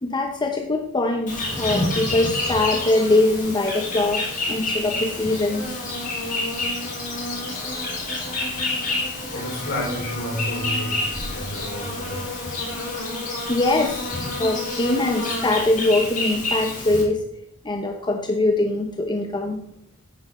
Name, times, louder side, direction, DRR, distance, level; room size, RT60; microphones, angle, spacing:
voice 1, 0.0-5.7 7.7-7.9 13.5-14.1 14.4-17.2 17.6-19.6, left 2 dB, 20° left, 4 dB, 0.7 m, -22 dB
Insect, 1.3-17.0, left 2 dB, 40° left, 3.3 m, -28 dB
voice 2, 9.3-12.4, equal, 55° left, -1 dB, 4.3 m, -31 dB
10.0 x 8.4 x 4.1 m, 0.72 s
head